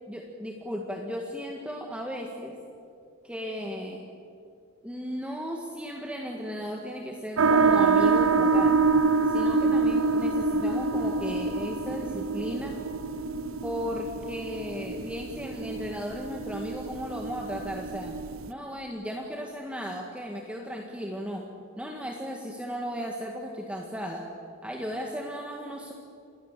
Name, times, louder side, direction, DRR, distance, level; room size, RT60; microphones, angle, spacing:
voice 1, 0.1-2.6 3.2-4.0 4.8-8.8 9.3-12.8 13.6-18.2 18.5-21.5 21.8-24.3 24.6-25.9, equal, 5° right, 0 dB, 1.7 m, -35 dB
sound 1, 7.4-18.5, right 4 dB, 80° right, 0.8 m, -26 dB
27.5 x 21.0 x 7.5 m, 2.5 s
head